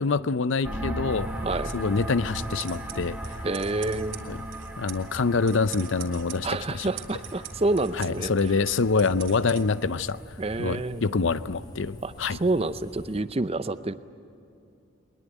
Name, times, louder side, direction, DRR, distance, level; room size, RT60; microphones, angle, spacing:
voice 1, 0.0-1.3 1.7-3.2 4.3-4.4 4.8-6.9 7.9-10.2 10.6-12.4, left 4 dB, 65° left, 15 dB, 0.6 m, -26 dB
sound 1, 0.6-10.2, right 1 dB, 5° right, 1.4 m, -38 dB
sound 2, 1.1-13.2, equal, 20° left, 3.0 m, -46 dB
voice 2, 1.4-1.7 3.4-4.2 6.4-8.3 10.4-11.0 12.0-13.9, right 2 dB, 30° right, 13 dB, 0.6 m, -28 dB
sound 3, 1.5-9.6, right 11 dB, 70° right, 2.5 m, -45 dB
21.5 x 21.0 x 9.1 m, 2.7 s
head